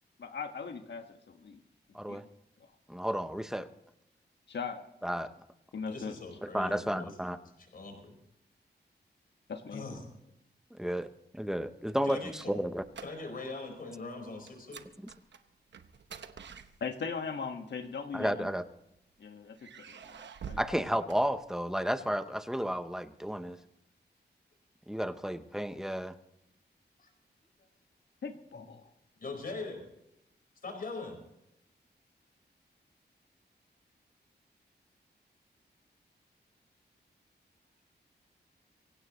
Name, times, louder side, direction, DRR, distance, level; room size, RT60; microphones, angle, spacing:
voice 1, 0.2-1.6 2.1-2.2 2.6-2.7 4.5-4.8 5.7-6.1 9.5-9.8 16.8-18.5 19.2-20.6 28.2-28.9, left 5 dB, 75° left, 6 dB, 1.5 m, -39 dB
voice 2, 2.9-3.7 5.0-5.3 6.4-7.4 10.7-12.8 18.1-18.6 20.6-23.6 24.9-26.2, equal, 5° right, 10 dB, 0.7 m, -32 dB
voice 3, 5.9-7.1 7.6-8.1 9.7-10.0 12.0-12.5 13.0-14.9 27.0-27.1 28.5-28.6 29.2-29.9 30.6-31.2, left 3 dB, 55° left, 3 dB, 4.6 m, -41 dB
sound 1, 11.7-13.6 13.8-14.1 14.5-17.3 18.1-19.0 19.6-21.9, right 7 dB, 85° right, 0.9 m, -49 dB
24.5 x 16.5 x 3.1 m, 0.82 s
wide cardioid pair, 170°, 18 cm